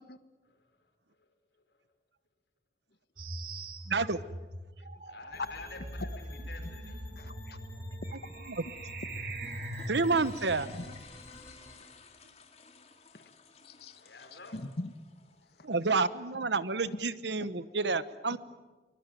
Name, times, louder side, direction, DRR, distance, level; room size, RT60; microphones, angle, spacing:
sound 1, 3.2-11.0, right 1 dB, 55° right, 2.3 m, -42 dB
voice 1, 3.9-4.2 8.5-8.6 9.9-10.7 15.6-18.4, right 4 dB, 85° right, 15 dB, 1.1 m, -29 dB
voice 2, 5.1-7.0 14.0-14.6, left 3 dB, 85° left, 5 dB, 4.9 m, -49 dB
sound 2, 5.3-11.8, left 1 dB, 20° left, 6.3 m, -52 dB
voice 3, 7.2-7.6 10.7-10.9 11.3-11.4 13.1-13.2 13.6-14.9, left 2 dB, 65° left, 11 dB, 1.5 m, -43 dB
Toilets flush, 9.3-15.9, left 4 dB, 35° left, 2.4 m, -54 dB
24.0 x 22.5 x 9.3 m, 1.2 s
head